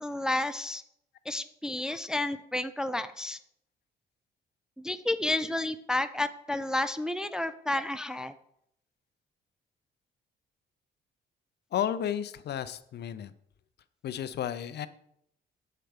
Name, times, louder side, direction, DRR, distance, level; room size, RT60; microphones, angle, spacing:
voice 1, 0.0-0.8 1.3-3.4 4.8-8.3, left 1 dB, 5° right, 10 dB, 0.3 m, -31 dB
voice 2, 11.7-13.3 14.0-14.9, left 10 dB, 55° left, 13 dB, 0.5 m, -32 dB
6.7 x 4.4 x 5.0 m, 0.72 s
cardioid pair, 90°, 20 cm